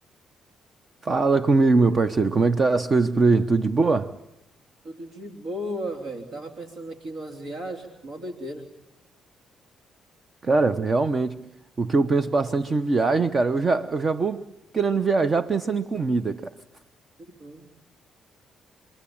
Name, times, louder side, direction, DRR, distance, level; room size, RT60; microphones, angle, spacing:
voice 1, 1.0-4.1 10.4-11.4 11.8-14.4 14.7-16.5, right 3 dB, 35° right, 1.0 m, -22 dB
voice 2, 4.8-8.7 17.3-17.7, equal, 65° right, 3.3 m, -35 dB
28.0 x 23.5 x 8.7 m
cardioid pair, 90°, 0 cm